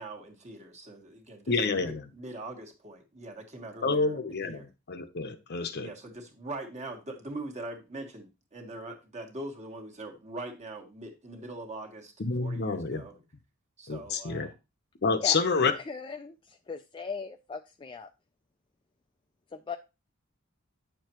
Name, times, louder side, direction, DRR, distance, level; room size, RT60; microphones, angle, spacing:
voice 1, 0.0-4.7 5.8-12.1 12.4-13.2 13.8-14.5, right 2 dB, 35° right, 1.4 m, -42 dB
voice 2, 1.5-2.1 3.8-5.9 12.2-13.0 13.9-14.5 15.0-15.7, left 4 dB, 50° left, 0.8 m, -28 dB
voice 3, 15.6-18.1 19.5-19.8, left 5 dB, 25° left, 0.3 m, -38 dB
9.0 x 6.7 x 3.0 m
head